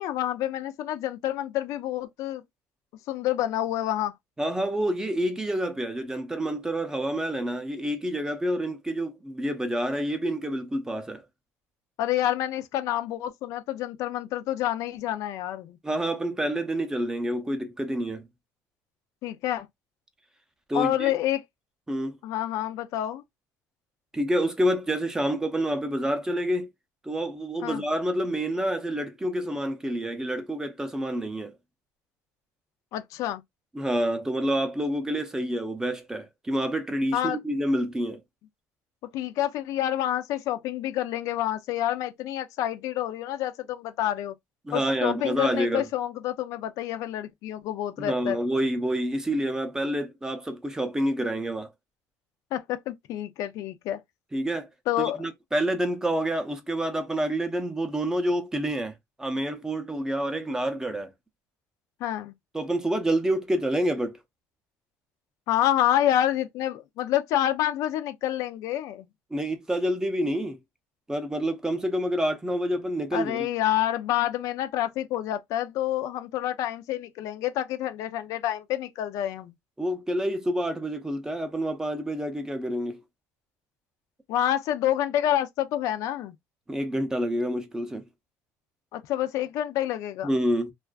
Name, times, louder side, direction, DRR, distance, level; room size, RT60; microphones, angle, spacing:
voice 1, 0.0-2.4 3.1-4.1 12.0-15.8 19.2-19.7 20.7-21.4 22.2-23.2 27.6-27.8 32.9-33.4 37.1-37.4 39.1-44.3 44.7-48.4 52.5-54.0 54.9-55.2 62.0-62.3 65.5-69.1 73.1-79.5 84.3-86.3 88.9-90.3, left 12 dB, 65° left, 0.4 m, -28 dB
voice 2, 4.4-11.2 15.8-18.3 20.7-21.1 21.9-22.2 24.1-26.7 27.0-31.6 33.7-38.2 44.6-45.8 48.0-51.7 54.3-54.7 55.0-61.1 62.5-64.2 69.3-70.6 71.1-73.5 79.8-83.0 86.7-88.0 90.2-90.7, right 1 dB, 10° right, 0.5 m, -28 dB
2.4 x 2.3 x 2.3 m
cardioid pair, 130°, 6 cm